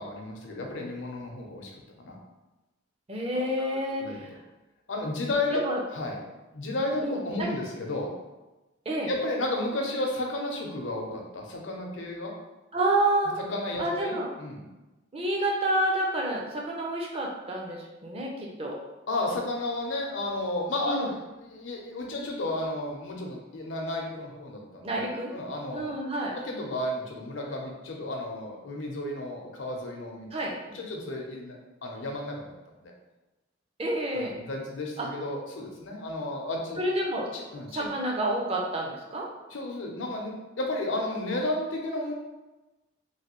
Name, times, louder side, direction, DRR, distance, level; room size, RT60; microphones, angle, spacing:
voice 1, 0.0-1.7 2.0-2.2 3.3-4.2 4.9-5.6 5.9-6.2 6.5-8.1 9.1-12.3 13.4-14.6 19.1-30.4 30.7-31.6 31.8-32.5 32.8-32.9 34.1-36.8 37.3-37.9 39.5-42.1, left 2 dB, 75° left, 0 dB, 0.6 m, -33 dB
voice 2, 3.1-4.3 5.5-5.8 7.0-7.5 8.9-9.1 12.7-13.3 13.8-14.3 15.1-18.8 20.9-21.1 24.8-25.3 25.7-26.3 30.3-30.5 33.8-34.4 35.0-35.1 36.8-37.3 37.7-39.3, right 1 dB, 30° right, -1 dB, 0.5 m, -29 dB
3.1 x 2.6 x 2.9 m, 1.1 s
head